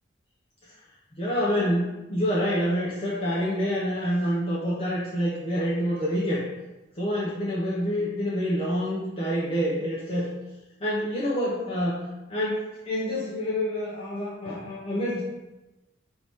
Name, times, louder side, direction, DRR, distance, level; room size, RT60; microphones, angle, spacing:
voice 1, 1.1-6.4 7.0-10.3 10.8-15.2, equal, 30° left, -7 dB, 0.7 m, -27 dB
4.7 x 2.7 x 3.4 m, 1.0 s
head